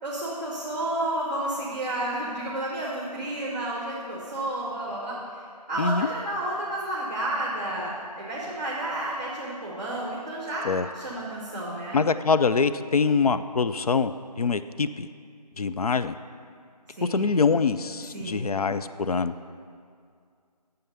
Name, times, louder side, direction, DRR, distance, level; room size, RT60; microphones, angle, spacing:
voice 1, 0.0-7.9 8.2-12.0 16.9-17.3 18.1-18.5, right 1 dB, 25° right, -5 dB, 1.5 m, -31 dB
voice 2, 5.8-6.1 10.6-10.9 11.9-15.1 15.6-16.1 17.0-19.3, left 5 dB, 60° left, 11 dB, 0.4 m, -24 dB
9.3 x 6.9 x 6.7 m, 2.2 s
figure-of-eight pair, 170°, 21 cm